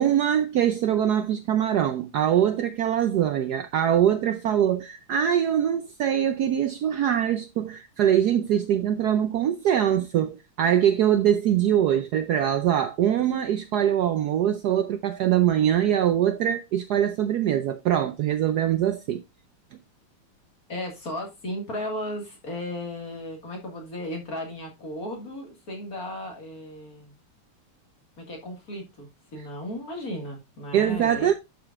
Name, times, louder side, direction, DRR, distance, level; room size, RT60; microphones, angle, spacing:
voice 1, 0.0-19.2 30.7-31.3, right 10 dB, 85° right, 0.8 m, -23 dB
voice 2, 20.7-27.1 28.2-31.3, left 1 dB, 45° left, 2.2 m, -35 dB
11.5 x 4.9 x 2.4 m
omnidirectional pair, 2.4 m